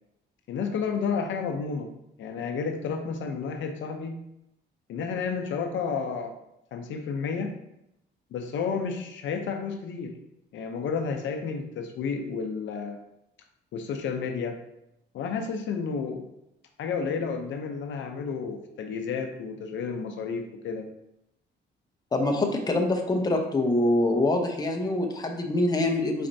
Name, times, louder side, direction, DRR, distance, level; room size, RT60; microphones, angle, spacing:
voice 1, 0.5-1.9 2.2-4.2 4.9-6.3 6.7-7.5 8.3-10.1 10.5-13.0 13.7-14.6 15.1-16.3 16.8-20.9, left 5 dB, 70° left, 4 dB, 0.6 m, -31 dB
voice 2, 22.1-26.3, left 2 dB, 20° left, 2 dB, 0.7 m, -25 dB
4.2 x 4.2 x 2.6 m, 0.83 s
cardioid pair, 90°, 20 cm